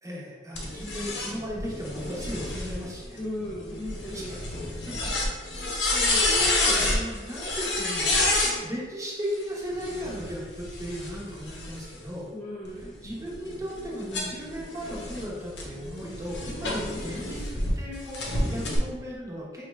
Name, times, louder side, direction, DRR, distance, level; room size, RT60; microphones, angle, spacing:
voice 1, 0.0-3.2 4.1-4.4 4.9-5.0 5.7-12.3 12.7-19.7, equal, 20° right, -4 dB, 0.8 m, -36 dB
sound 1, 0.6-8.6 9.7-12.1 12.6-17.7 18.1-18.8, left 2 dB, 80° left, 0.8 m, -29 dB
voice 2, 3.2-4.4 12.3-13.1 16.6-17.3, left 1 dB, 10° left, -8 dB, 0.5 m, -37 dB
4.8 x 2.4 x 3.1 m, 1.4 s
head